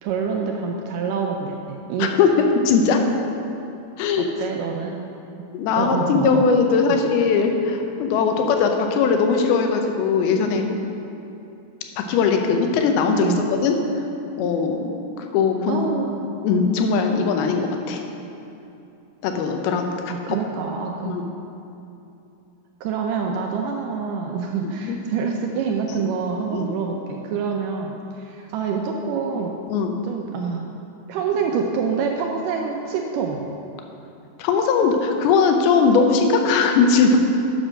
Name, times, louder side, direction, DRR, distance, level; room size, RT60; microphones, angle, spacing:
voice 1, 0.0-2.1 4.2-5.0 5.7-6.5 6.9-7.0 13.2-13.5 15.7-16.2 20.1-21.2 22.8-29.6 30.0-30.7 31.1-33.5, right 5 dB, 85° right, 1 dB, 1.9 m, -26 dB
voice 2, 2.0-3.0 4.0-4.3 5.5-10.7 12.0-13.7 14.3-14.9 15.2-15.9 16.4-18.0 19.2-20.1 21.0-21.2 24.8-25.0 29.7-29.9 34.4-37.2, left 5 dB, 85° left, 4 dB, 2.6 m, -19 dB
7.8 x 6.2 x 6.4 m, 2.8 s
omnidirectional pair, 4.4 m